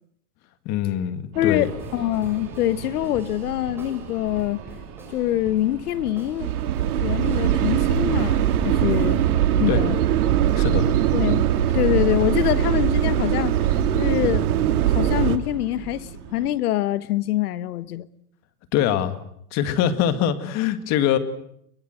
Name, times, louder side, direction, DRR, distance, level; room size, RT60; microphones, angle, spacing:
voice 1, 0.7-1.7 9.7-9.8 10.5-10.9 18.7-19.2 19.5-21.2, left 10 dB, 35° left, 2.2 m, -23 dB
voice 2, 1.3-4.6 5.1-6.5 7.0-9.2 9.6-10.0 11.1-11.4 11.7-13.6 14.0-14.5 14.9-18.1, left 13 dB, 80° left, 1.4 m, -24 dB
sound 1, 1.3-16.5, right 8 dB, 35° right, 4.3 m, -39 dB
sound 2, 1.6-9.3, right 1 dB, 5° right, 6.7 m, -47 dB
sound 3, 6.4-15.4, right 10 dB, 75° right, 2.1 m, -21 dB
25.5 x 22.5 x 7.9 m
supercardioid pair, 150°, 45 cm